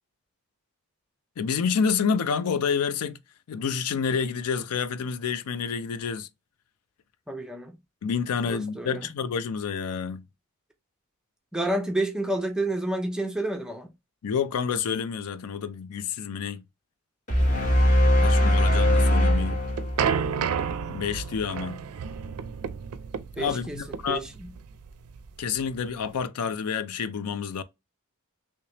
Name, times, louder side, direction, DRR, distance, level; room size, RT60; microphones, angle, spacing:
voice 1, 1.4-3.2 3.5-6.3 8.0-10.3 14.2-16.6 18.2-19.6 20.9-21.8 23.4-24.2 25.4-27.6, left 6 dB, 85° left, 0.4 m, -28 dB
voice 2, 7.3-7.8 8.4-9.1 11.5-13.9 18.2-18.7 23.4-24.5, right 1 dB, 5° right, 0.5 m, -30 dB
sound 1, 17.3-20.6, left 1 dB, 35° left, 1.2 m, -21 dB
sound 2, 19.3-26.2, right 7 dB, 85° right, 0.4 m, -31 dB
3.2 x 3.1 x 2.8 m
head